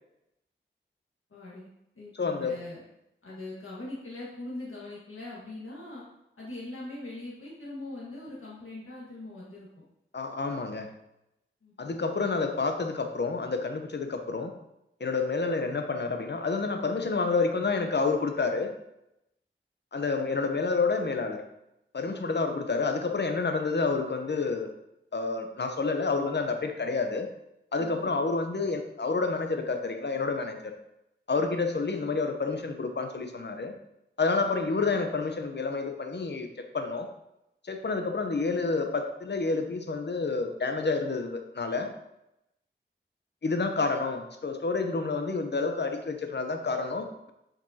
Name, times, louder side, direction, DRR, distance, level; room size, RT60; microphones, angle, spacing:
voice 1, 1.3-1.7 1.9-2.8 3.2-6.0 6.4-9.8 11.6-11.9 22.1-22.4 27.8-28.1, left 2 dB, 85° left, -7 dB, 1.6 m, -41 dB
voice 2, 2.2-2.5 10.1-10.9 11.8-14.5 15.0-18.7 19.9-21.4 21.9-24.7 25.1-27.3 27.7-30.7 31.3-33.7 34.2-36.5 36.7-37.1 37.6-41.9 43.4-47.3, left 4 dB, 55° left, 5 dB, 0.8 m, -29 dB
7.5 x 5.1 x 2.8 m, 0.85 s
wide cardioid pair, 60°, 21 cm